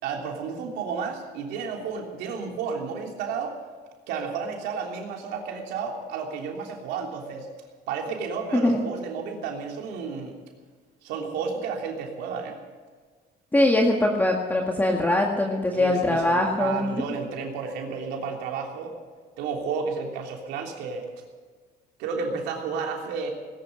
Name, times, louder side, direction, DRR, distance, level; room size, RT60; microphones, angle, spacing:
voice 1, 0.0-3.6 4.1-7.5 7.9-10.3 11.0-12.6 15.7-19.0 19.4-21.0 22.0-23.3, right 5 dB, 90° right, 1 dB, 3.2 m, -32 dB
voice 2, 13.5-17.0, left 1 dB, 10° left, 1 dB, 1.9 m, -22 dB
19.0 x 11.0 x 6.7 m, 1.5 s
cardioid pair, 110°, 17 cm